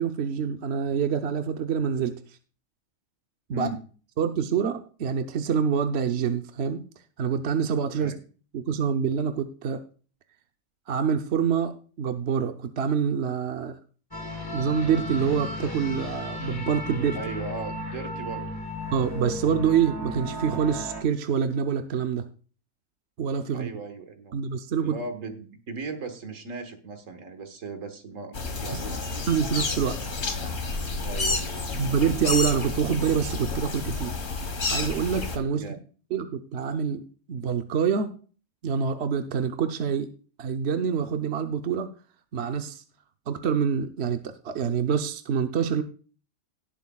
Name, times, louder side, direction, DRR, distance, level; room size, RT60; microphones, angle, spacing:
voice 1, 0.0-2.2 3.5-3.7 4.2-6.8 7.2-8.1 8.5-9.8 10.9-13.8 14.5-17.2 18.9-22.2 23.2-23.7 24.3-25.0 29.3-30.0 31.7-34.1 34.7-35.6 36.1-37.0 37.3-38.1 38.6-40.1 40.4-41.9 42.3-42.8 43.3-45.8, right 7 dB, 60° right, 6 dB, 1.0 m, -26 dB
sound 1, 14.1-21.0, left 1 dB, 15° left, 1.5 m, -34 dB
voice 2, 17.1-18.5 23.5-24.4 24.8-29.2 31.0-31.7 35.6-35.8, right 3 dB, 75° right, 7 dB, 1.8 m, -37 dB
sound 2, 28.3-35.4, left 3 dB, 75° left, 2.0 m, -30 dB
18.0 x 7.7 x 2.3 m, 0.39 s
omnidirectional pair, 1.3 m